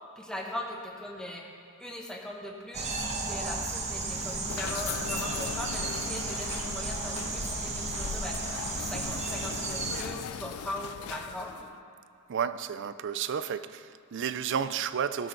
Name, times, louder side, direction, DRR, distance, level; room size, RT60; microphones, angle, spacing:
voice 1, 0.2-1.4 1.8-8.4 8.7-11.7, left 1 dB, 5° left, 1.4 m, -40 dB
sound 1, 2.7-10.0, right 3 dB, 30° right, 1.1 m, -34 dB
sound 2, 3.9-11.7, left 8 dB, 90° left, 0.4 m, -39 dB
voice 2, 12.3-15.3, right 7 dB, 60° right, 0.4 m, -32 dB
18.0 x 6.6 x 4.5 m
head